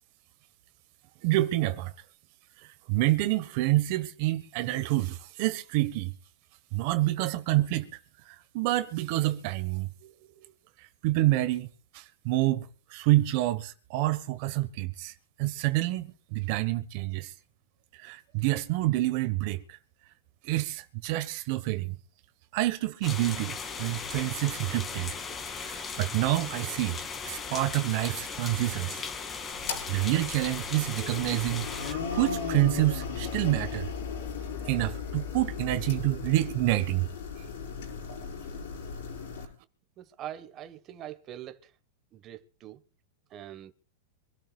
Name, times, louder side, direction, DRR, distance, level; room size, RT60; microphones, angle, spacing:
voice 1, 1.2-1.9 2.6-6.1 6.7-8.0 8.2-9.9 11.0-11.7 11.9-15.1 15.4-17.3 18.0-19.6 20.4-22.0 22.5-25.2 25.6-27.0 27.2-29.0 29.9-33.9 34.6-37.1, right 17 dB, 50° right, 1.3 m, -28 dB
sound 1, 23.0-31.9, left 5 dB, 20° left, 2.4 m, -37 dB
sound 2, 29.5-39.4, left 6 dB, 70° left, 6.1 m, -36 dB
voice 2, 40.0-41.7 42.1-42.8 43.3-43.7, right 11 dB, 30° right, 1.4 m, -43 dB
26.0 x 12.5 x 2.4 m
supercardioid pair, 145°, 0 cm